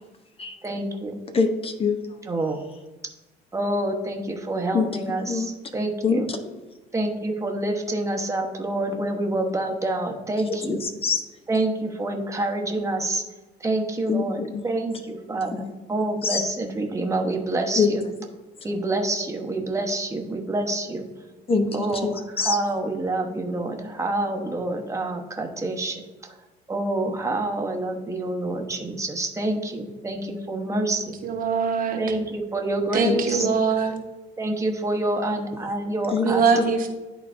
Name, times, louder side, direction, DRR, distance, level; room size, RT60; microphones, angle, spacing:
voice 1, 0.6-1.2 2.2-2.7 3.5-6.3 6.9-10.8 11.5-13.3 13.6-18.0 18.6-21.1 21.7-26.3 26.7-31.2 32.0-33.5 34.4-36.4, right 2 dB, 20° right, 3 dB, 1.0 m, -27 dB
voice 2, 1.3-2.0 4.7-4.9 5.3-5.5 6.0-6.2 10.5-11.2 14.1-14.6 15.5-15.7 16.2-16.4 17.7-17.9 21.5-22.1 22.4-22.6 33.0-33.5 36.1-36.7, left 5 dB, 35° left, 6 dB, 0.7 m, -24 dB
voice 3, 31.2-32.0 32.9-34.0 36.2-36.9, right 5 dB, 55° right, 4 dB, 1.0 m, -22 dB
10.5 x 4.0 x 2.6 m, 1.1 s
cardioid pair, 110°, 17 cm